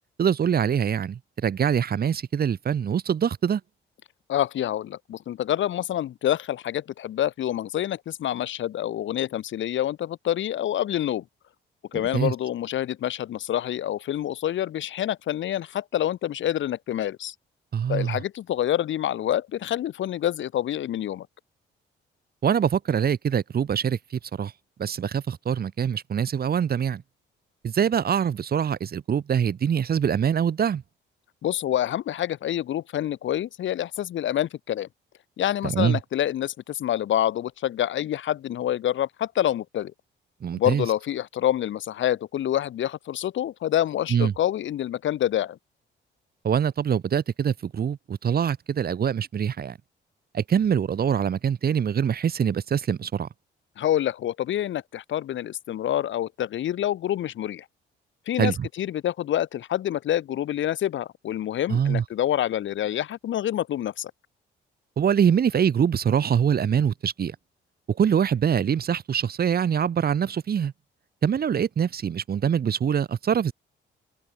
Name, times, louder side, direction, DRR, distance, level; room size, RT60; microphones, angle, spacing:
voice 1, 0.2-3.6 12.1-12.3 17.7-18.2 22.4-24.5 24.8-27.0 27.6-30.8 35.6-36.0 40.4-40.8 44.1-44.3 46.4-49.8 50.3-53.3 58.4-58.7 61.7-62.0 65.0-67.4 67.9-70.7 71.2-73.5, right 8 dB, 50° right, 2.5 m, -24 dB
voice 2, 4.3-11.2 11.9-17.3 17.9-21.3 31.4-34.9 35.4-39.9 40.5-45.6 53.8-57.6 58.3-64.1, left 11 dB, 75° left, 4.8 m, -27 dB
cardioid pair, 90°, 20 cm